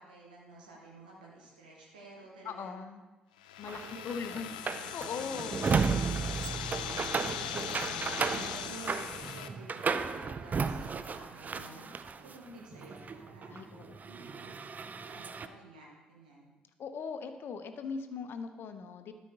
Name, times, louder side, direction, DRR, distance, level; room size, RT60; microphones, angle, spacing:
voice 1, 0.0-2.7 3.6-4.0 6.4-7.1 8.2-13.6 14.0-14.6 15.0-16.5, right 2 dB, 85° right, -3 dB, 1.4 m, -52 dB
voice 2, 2.4-3.0 3.6-5.8 13.5-14.0 16.8-19.1, left 5 dB, 55° left, 8 dB, 0.8 m, -40 dB
sound 1, 3.4-9.5, left 10 dB, 85° left, 0.3 m, -40 dB
sound 2, 3.6-12.4 12.7-15.5, right 5 dB, 40° right, 0.5 m, -34 dB
12.0 x 5.1 x 3.7 m, 1.2 s
hypercardioid pair, 45°, 4 cm